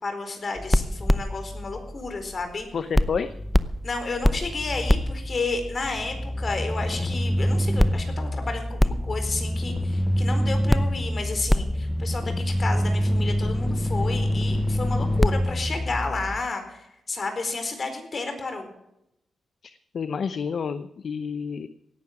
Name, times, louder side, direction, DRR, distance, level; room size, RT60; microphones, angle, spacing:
voice 1, 0.0-2.7 3.8-18.7, left 3 dB, 45° left, 6 dB, 4.2 m, -31 dB
sound 1, 0.6-2.6 2.9-16.4, equal, 5° left, 0.7 m, -25 dB
voice 2, 2.7-3.3 19.6-21.7, left 6 dB, 60° left, 12 dB, 0.7 m, -29 dB
17.0 x 11.0 x 6.0 m, 0.84 s
cardioid pair, 90°, 0 cm